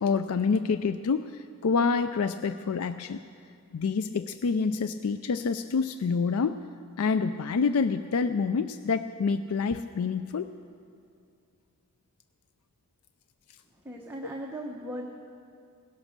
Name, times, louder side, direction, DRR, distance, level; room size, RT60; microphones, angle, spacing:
voice 1, 0.0-3.2 3.7-6.6 7.0-10.5, left 5 dB, 80° left, 11 dB, 0.4 m, -27 dB
voice 2, 13.8-15.1, right 1 dB, 10° right, -1 dB, 1.0 m, -38 dB
18.0 x 11.5 x 6.6 m, 2.4 s
head